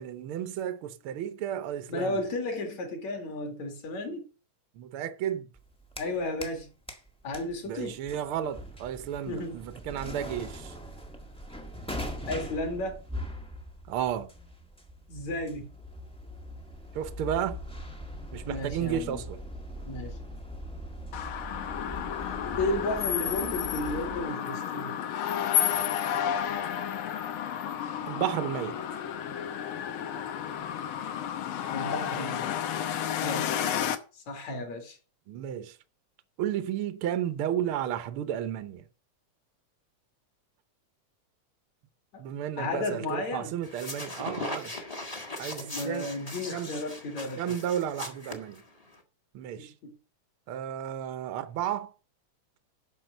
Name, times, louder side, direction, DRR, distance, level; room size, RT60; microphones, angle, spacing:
voice 1, 0.0-2.2 4.7-5.5 7.7-10.8 13.9-14.3 16.9-17.6 18.3-19.4 28.1-29.1 35.3-35.8 36.4-38.8 42.2-44.7 45.4-46.1 46.5-46.7 47.4-48.6 49.3-49.7 50.5-51.9, right 10 dB, 80° right, 1.2 m, -33 dB
voice 2, 1.9-4.3 6.0-6.7 7.2-8.0 9.3-9.6 12.3-13.0 15.1-15.7 18.4-19.2 19.8-20.2 22.6-24.9 31.7-32.7 33.2-33.5 34.3-35.0 42.1-42.2 42.6-43.5 45.6-47.4 49.6-49.9, left 2 dB, 60° left, 3.5 m, -33 dB
sound 1, 5.5-6.6 6.9-24.3, equal, 10° left, 0.3 m, -41 dB
sound 2, 21.1-34.0, left 10 dB, 90° left, 1.1 m, -31 dB
sound 3, 43.6-49.0, left 2 dB, 25° left, 0.8 m, -39 dB
10.5 x 6.4 x 6.5 m
omnidirectional pair, 3.6 m